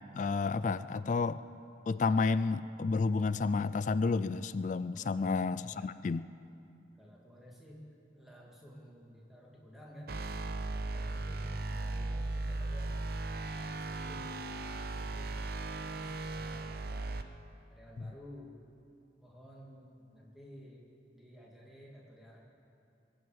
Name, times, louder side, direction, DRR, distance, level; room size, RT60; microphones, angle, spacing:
voice 1, 0.1-1.4 1.9-6.2, left 4 dB, 40° left, 15 dB, 0.3 m, -31 dB
voice 2, 4.9-5.9 6.8-7.9 8.1-10.2 10.7-12.9 13.4-14.7 14.9-15.4 15.9-17.3 17.7-18.6 19.2-20.8 21.1-22.4, equal, ahead, -4 dB, 2.4 m, -53 dB
sound 1, 10.1-17.2, right 2 dB, 50° right, 0.6 m, -37 dB
22.5 x 7.9 x 7.9 m, 2.7 s
head